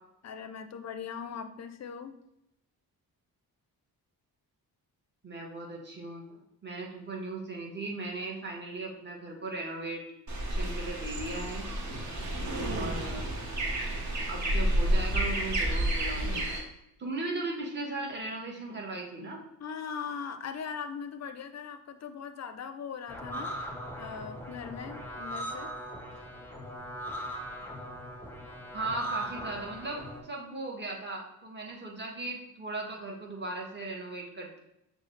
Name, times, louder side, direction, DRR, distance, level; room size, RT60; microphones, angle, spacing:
voice 1, 0.2-2.2 19.6-23.6 24.0-25.7, left 6 dB, 45° left, 9 dB, 0.5 m, -40 dB
voice 2, 5.2-10.0 10.5-11.7 12.7-13.3 14.3-16.5 17.0-19.4 28.7-34.6, right 2 dB, 30° right, -1 dB, 1.3 m, -37 dB
sound 1, 10.3-16.6, right 1 dB, 45° right, 1.2 m, -30 dB
sound 2, 23.1-30.2, right 1 dB, 5° left, 0.8 m, -39 dB
6.1 x 2.3 x 3.2 m, 0.83 s
cardioid pair, 75°, 38 cm